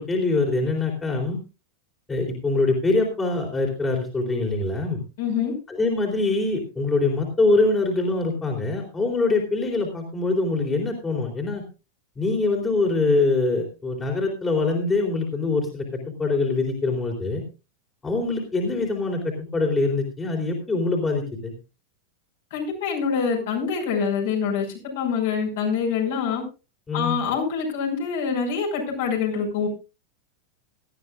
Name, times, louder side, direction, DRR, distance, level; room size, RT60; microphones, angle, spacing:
voice 1, 0.0-1.4 2.1-5.0 5.7-11.6 12.2-17.4 18.0-21.5 26.9-27.2, left 3 dB, 15° left, 0 dB, 3.7 m, -24 dB
voice 2, 5.2-5.5 22.5-24.7 25.0-26.4 26.9-29.7, left 6 dB, 55° left, 0 dB, 5.8 m, -25 dB
18.5 x 13.5 x 2.5 m, 0.30 s
figure-of-eight pair, 90°, 0 cm